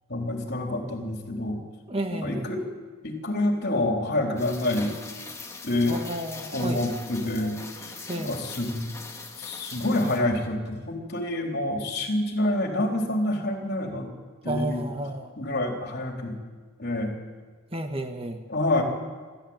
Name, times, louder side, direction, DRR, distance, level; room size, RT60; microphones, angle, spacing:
voice 1, 0.1-1.6 2.1-2.7 3.0-4.9 5.6-6.0 6.5-8.9 9.3-14.1 14.4-14.9 15.4-16.4 16.8-17.1 18.5-18.8, left 1 dB, 50° left, 2 dB, 3.8 m, -27 dB
voice 2, 1.9-2.6 5.9-6.8 8.1-8.4 14.4-15.3 17.7-18.4, right 1 dB, 25° right, 5 dB, 1.4 m, -32 dB
Rain, 4.4-10.2, left 3 dB, 15° left, 2.1 m, -41 dB
27.5 x 14.0 x 9.0 m, 1.5 s
head